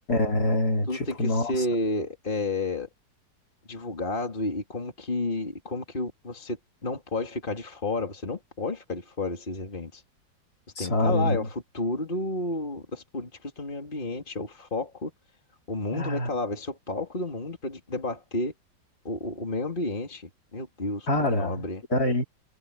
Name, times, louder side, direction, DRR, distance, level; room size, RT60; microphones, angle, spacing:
voice 1, 0.1-1.5 10.8-11.5 15.9-16.3 21.1-21.6 21.9-22.2, left 1 dB, 55° left, 4.4 m, -25 dB
voice 2, 0.9-2.9 3.7-6.6 6.8-10.0 10.8-15.1 15.7-18.5 19.0-21.8, left 2 dB, 25° left, 3.4 m, -31 dB
omnidirectional pair, 2.0 m